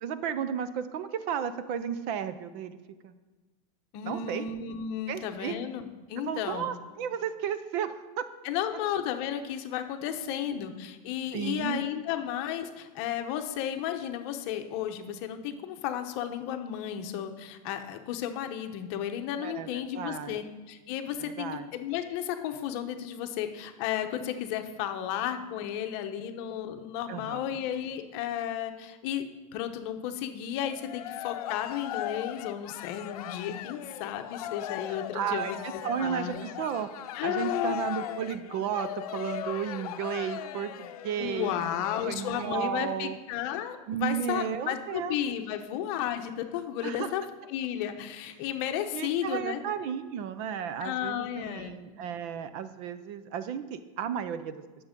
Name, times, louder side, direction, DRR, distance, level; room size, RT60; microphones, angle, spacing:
voice 1, 0.0-2.8 3.0-3.1 4.0-4.5 5.1-5.6 6.2-8.2 10.2-10.5 11.3-11.8 19.4-20.4 21.2-21.7 27.1-27.6 34.9-36.9 37.2-43.2 43.9-45.3 46.8-47.1 48.9-54.6, right 8 dB, 40° right, 12 dB, 0.6 m, -34 dB
voice 2, 3.9-6.7 8.4-29.2 29.5-35.6 36.0-36.4 37.2-37.8 41.2-47.2 47.5-49.6 50.8-51.8, left 10 dB, 45° left, 7 dB, 0.9 m, -33 dB
Cheering, 30.7-42.4, left 11 dB, 70° left, 0.7 m, -39 dB
10.5 x 7.0 x 5.2 m, 1.2 s
supercardioid pair, 160°, 20 cm